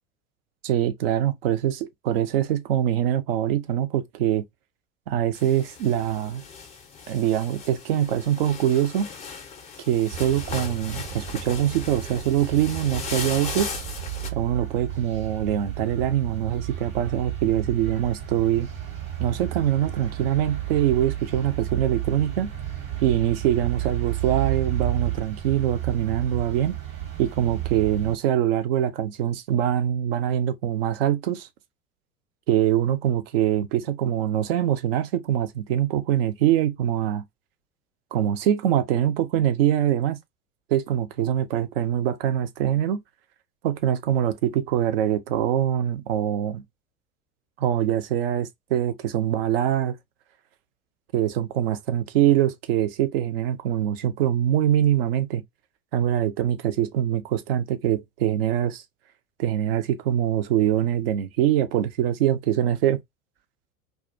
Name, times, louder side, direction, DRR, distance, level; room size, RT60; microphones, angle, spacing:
voice 1, 0.6-4.4 5.1-6.4 7.1-9.1 9.9-13.7 14.3-18.7 19.2-22.5 23.0-26.7 27.2-31.5 32.5-37.2 38.1-40.2 40.7-43.0 43.6-46.6 47.6-50.0 51.1-55.4 55.9-58.8 59.4-63.0, right 11 dB, 45° right, 0.4 m, -23 dB
sound 1, 5.3-14.3, left 5 dB, 15° left, 0.5 m, -37 dB
sound 2, 10.1-28.2, right 12 dB, 70° right, 1.1 m, -32 dB
2.2 x 2.2 x 2.4 m
figure-of-eight pair, 80°, 41 cm